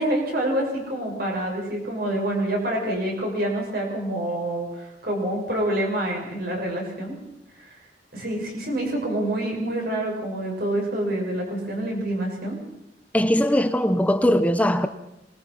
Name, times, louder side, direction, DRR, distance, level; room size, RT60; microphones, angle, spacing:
voice 1, 0.0-7.1 7.5-7.8 8.1-12.5, right 1 dB, 55° right, 6.9 m, -27 dB
voice 2, 13.1-14.9, equal, 10° left, 0.9 m, -20 dB
25.0 x 21.0 x 5.7 m
head